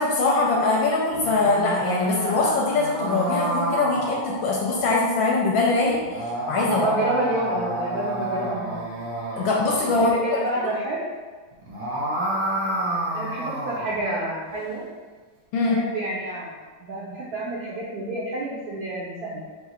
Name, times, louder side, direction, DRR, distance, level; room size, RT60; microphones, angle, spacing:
voice 1, 0.0-6.9 9.3-10.1 10.6-10.7 15.5-15.8, left 3 dB, 80° left, -3 dB, 1.3 m, -22 dB
sound 1, 1.0-4.9 5.9-10.1 11.5-14.0, right 1 dB, 45° right, 0.6 m, -29 dB
voice 2, 6.7-8.8 9.9-11.0 13.1-14.8 15.7-19.4, right 2 dB, 70° right, -5 dB, 0.9 m, -29 dB
3.8 x 2.4 x 4.2 m, 1.4 s
omnidirectional pair, 2.2 m